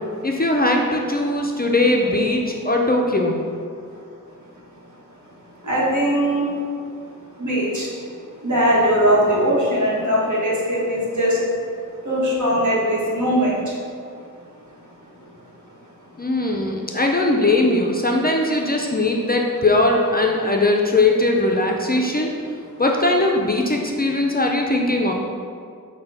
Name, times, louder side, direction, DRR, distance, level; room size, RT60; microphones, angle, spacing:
voice 1, 0.2-3.4 16.2-22.3 22.8-25.1, left 2 dB, 30° left, 0 dB, 0.4 m, -20 dB
voice 2, 5.6-6.5 7.4-7.9 8.4-11.4 12.0-13.7, equal, 60° right, -6 dB, 1.1 m, -20 dB
5.4 x 2.2 x 3.4 m, 2.3 s
wide cardioid pair, 40°, 34 cm